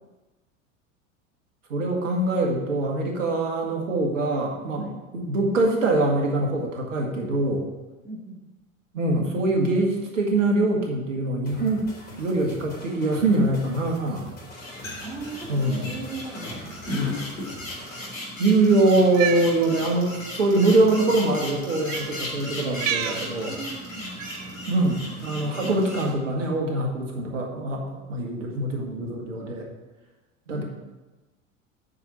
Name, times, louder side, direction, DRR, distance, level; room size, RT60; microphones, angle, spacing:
voice 1, 1.7-4.9 5.1-7.7 8.9-11.9 12.2-14.3 15.5-15.9 18.4-23.5 24.7-29.7 30.5-30.6, right 2 dB, 70° right, 0 dB, 2.0 m, -23 dB
voice 2, 8.0-8.4 15.0-16.8 23.5-24.2 30.5-30.6, right 3 dB, 5° right, -8 dB, 2.6 m, -38 dB
sound 1, 11.5-18.1, equal, 20° left, 3.6 m, -44 dB
sound 2, 14.5-26.1, left 2 dB, 80° left, 2.9 m, -35 dB
Cat, 19.0-19.5 20.5-20.7 21.8-22.1 22.7-23.2 24.2-24.5, right 9 dB, 50° right, 0.9 m, -29 dB
8.9 x 5.5 x 7.5 m, 1.1 s
figure-of-eight pair, 75°, 40 cm